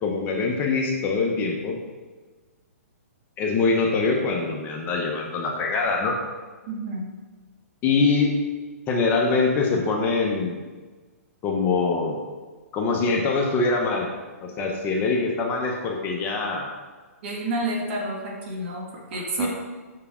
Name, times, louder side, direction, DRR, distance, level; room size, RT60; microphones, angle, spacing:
voice 1, 0.0-1.8 3.4-6.2 7.8-8.3 8.9-10.6 11.4-12.2 12.7-14.1 14.4-16.7 19.1-19.5, left 4 dB, 25° left, 0 dB, 0.8 m, -24 dB
voice 2, 6.7-7.1 17.2-19.5, right 2 dB, 50° right, -2 dB, 1.7 m, -29 dB
6.6 x 4.8 x 3.6 m, 1.3 s
hypercardioid pair, 140°, 8 cm